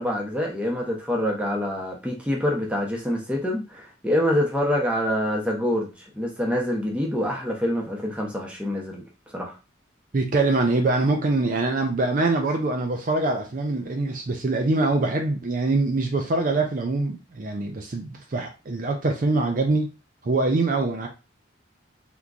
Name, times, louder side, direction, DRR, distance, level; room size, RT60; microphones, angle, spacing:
voice 1, 0.0-9.0 9.3-9.6, left 1 dB, 5° right, -1 dB, 0.7 m, -26 dB
voice 2, 10.1-19.9 20.2-21.1, right 2 dB, 45° right, 3 dB, 0.4 m, -24 dB
3.6 x 2.9 x 2.4 m, 0.30 s
head